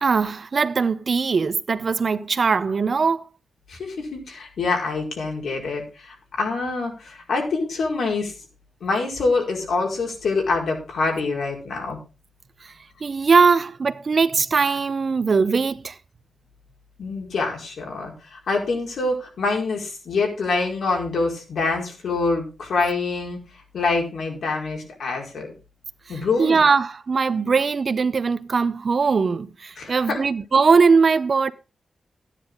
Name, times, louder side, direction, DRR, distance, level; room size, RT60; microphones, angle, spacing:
voice 1, 0.0-3.2 12.6-12.7 13.0-16.0 26.4-31.5, right 5 dB, 45° right, 0.7 m, -20 dB
voice 2, 3.7-8.3 8.8-12.0 17.0-23.4 23.7-25.5 26.1-26.6 29.8-30.2, left 3 dB, 85° left, 4.9 m, -25 dB
14.0 x 10.0 x 3.9 m
wide cardioid pair, 140°, 0 cm